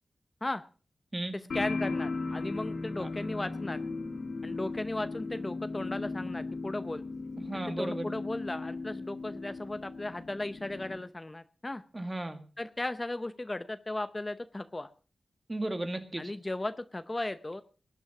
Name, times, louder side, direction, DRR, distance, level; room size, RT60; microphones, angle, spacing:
voice 1, 1.3-3.8 4.4-7.0 7.5-11.8 12.6-14.9 16.2-17.6, left 2 dB, 20° left, 11 dB, 0.7 m, -36 dB
sound 1, 1.5-11.0, left 3 dB, 80° left, 2.6 m, -37 dB
voice 2, 7.4-8.0 11.9-12.4 15.5-16.3, right 1 dB, 25° right, 8 dB, 1.9 m, -35 dB
20.0 x 9.5 x 6.0 m, 0.38 s
wide cardioid pair, 110°, 0 cm